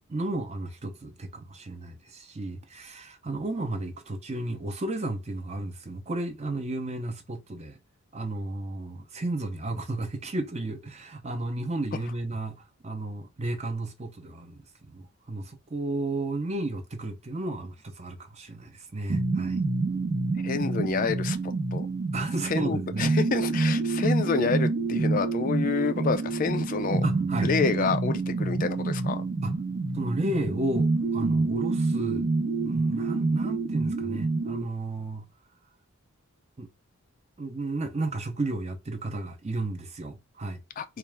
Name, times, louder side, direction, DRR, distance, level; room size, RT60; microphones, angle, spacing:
voice 1, 0.0-7.8 8.1-19.6 22.1-23.1 27.0-27.5 29.4-29.6 29.9-32.3 32.6-35.3 36.6-36.7 37.4-40.6, right 2 dB, 30° right, 0.6 m, -33 dB
sound 1, 19.1-34.6, right 3 dB, 60° right, 1.0 m, -27 dB
voice 2, 20.4-21.9 22.4-27.1 27.4-29.3 40.8-40.9, left 5 dB, 40° left, 0.3 m, -28 dB
4.0 x 2.4 x 3.4 m
head